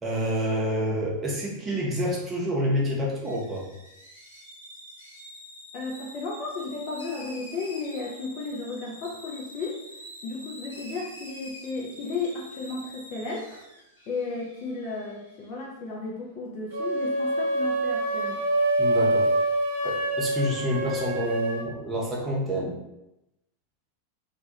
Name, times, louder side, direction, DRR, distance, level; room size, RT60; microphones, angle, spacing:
voice 1, 0.0-3.6 18.8-19.3 19.8-22.7, equal, 15° right, -4 dB, 0.7 m, -28 dB
sound 1, 3.2-15.5, equal, 70° left, 0.7 m, -46 dB
voice 2, 5.7-9.8 10.2-13.6 14.1-18.4, left 3 dB, 40° left, -3 dB, 0.4 m, -34 dB
sound 2, 16.7-21.7, right 1 dB, 60° right, 0.5 m, -25 dB
2.2 x 2.1 x 2.7 m, 0.91 s
figure-of-eight pair, 90°, 0 cm